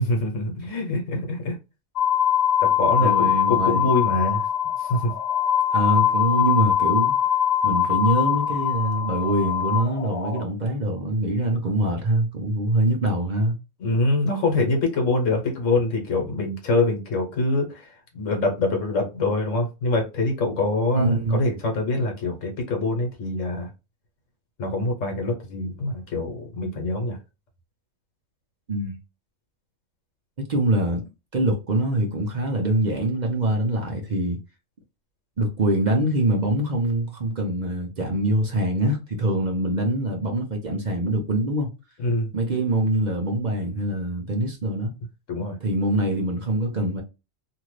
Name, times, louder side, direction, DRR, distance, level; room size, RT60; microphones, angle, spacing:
voice 1, 0.0-1.6 2.6-4.4 4.8-5.1 13.8-23.7 24.6-27.2 42.0-42.3 45.3-45.6, left 2 dB, 70° left, 1.3 m, -24 dB
sound 1, 2.0-10.4, left 9 dB, 55° left, 0.4 m, -22 dB
voice 2, 3.0-3.9 5.7-7.1 7.6-13.6 20.9-21.4 28.7-29.0 30.4-31.0 31.3-34.4 35.4-41.7 42.3-44.9 45.6-47.0, right 1 dB, 45° right, 0.6 m, -24 dB
2.8 x 2.5 x 3.1 m
omnidirectional pair, 1.3 m